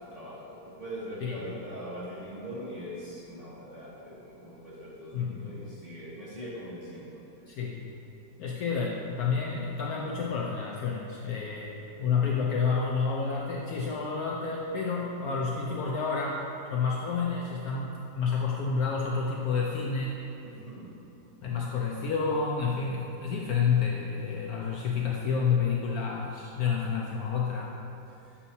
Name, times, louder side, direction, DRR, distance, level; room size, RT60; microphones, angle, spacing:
voice 1, 0.0-7.2 20.4-20.9, equal, 25° right, -10 dB, 1.0 m, -41 dB
voice 2, 1.2-1.6 5.1-5.5 7.5-7.9 8.4-16.4 16.7-20.2 21.4-27.7, left 5 dB, 70° left, -2 dB, 0.9 m, -29 dB
7.2 x 5.7 x 2.7 m, 2.8 s
omnidirectional pair, 1.9 m